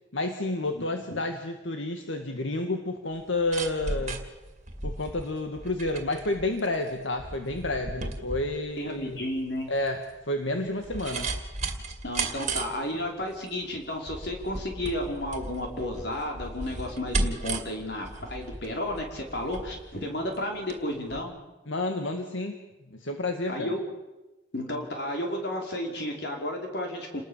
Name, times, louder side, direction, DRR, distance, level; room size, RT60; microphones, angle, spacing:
voice 1, 0.1-4.2 4.8-9.2 9.7-10.0 10.3-11.3 21.7-22.6 22.9-23.7, left 2 dB, 80° left, 5 dB, 1.9 m, -30 dB
voice 2, 0.7-1.2 8.8-9.7 12.0-21.3 23.5-23.8 24.5-27.2, left 1 dB, 60° left, 2 dB, 5.2 m, -32 dB
sound 1, 3.2-20.8 21.1-21.2, right 3 dB, 35° right, 2.3 m, -36 dB
29.0 x 19.5 x 7.4 m, 1.1 s
head